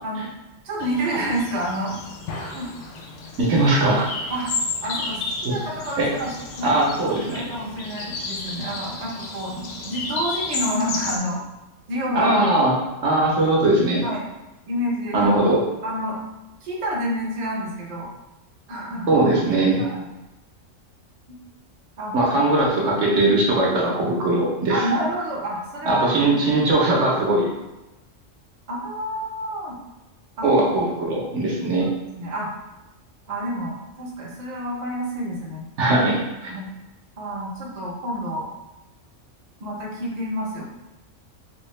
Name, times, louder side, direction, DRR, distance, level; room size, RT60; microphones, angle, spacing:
voice 1, 0.0-0.3 0.6-2.0 2.4-2.7 4.3-4.5 4.8-6.3 6.6-6.7 7.3-11.4 11.9-12.4 14.0-14.3 14.7-15.3 15.8-16.2 16.6-18.1 18.7-19.2 19.8-20.1 21.3-21.4 22.0-22.1 24.7-26.0 28.7-29.8 30.4-30.5 31.6-31.8 32.1-32.5 33.3-35.7 36.4-36.7 37.2-38.5 39.6-40.6, equal, 40° right, -4 dB, 0.7 m, -29 dB
sound 1, 0.8-11.2, left 3 dB, 75° left, 0.9 m, -32 dB
voice 2, 3.4-4.1 5.4-5.5 6.0-6.1 6.6-7.4 12.1-12.7 13.0-14.0 15.1-15.6 19.1-19.8 22.1-24.9 25.9-27.5 30.4-31.9 35.8-36.5, right 2 dB, 70° right, -4 dB, 1.1 m, -20 dB
3.5 x 2.7 x 3.1 m, 1.0 s
omnidirectional pair, 1.3 m